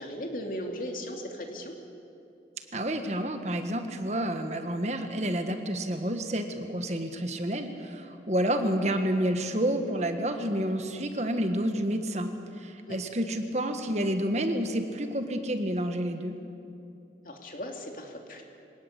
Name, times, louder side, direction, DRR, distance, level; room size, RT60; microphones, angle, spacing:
voice 1, 0.0-1.7 12.9-13.0 17.2-18.4, equal, 50° left, 2 dB, 3.0 m, -37 dB
voice 2, 2.7-16.4, right 1 dB, 40° right, 6 dB, 1.6 m, -29 dB
24.5 x 18.5 x 8.3 m, 2.7 s
head